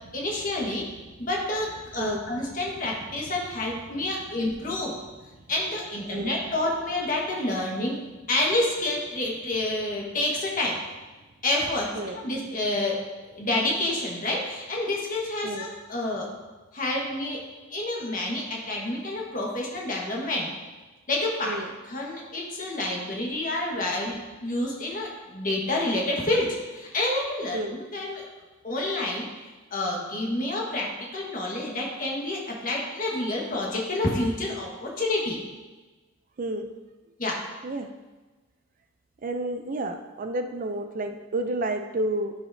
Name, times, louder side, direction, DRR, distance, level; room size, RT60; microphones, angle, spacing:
voice 1, 0.1-0.8 1.2-5.0 5.5-8.0 8.3-10.8 11.4-13.0 13.4-16.3 16.7-17.4 17.7-20.5 21.1-21.6 21.9-28.2 28.6-29.3 29.7-35.4 37.2-37.4, left 2 dB, 40° left, -2 dB, 1.5 m, -28 dB
voice 2, 2.0-2.3 6.1-6.4 11.9-12.2 15.4-15.7 21.4-21.7 27.5-27.8 36.4-36.7 37.6-37.9 39.2-42.3, right 2 dB, 40° right, 6 dB, 0.4 m, -30 dB
12.0 x 4.9 x 2.7 m, 1.2 s
head